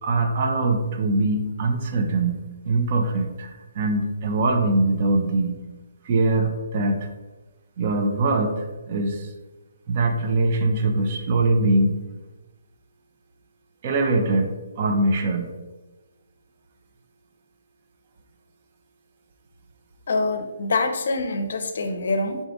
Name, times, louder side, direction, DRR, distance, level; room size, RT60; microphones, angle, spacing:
voice 1, 0.0-5.6 6.0-7.1 7.8-9.3 9.9-12.0 13.8-15.5, right 2 dB, 40° right, 5 dB, 0.5 m, -22 dB
voice 2, 20.1-22.4, left 3 dB, 65° left, 6 dB, 0.5 m, -25 dB
3.8 x 2.4 x 3.5 m, 1.2 s
hypercardioid pair, 150°, 0 cm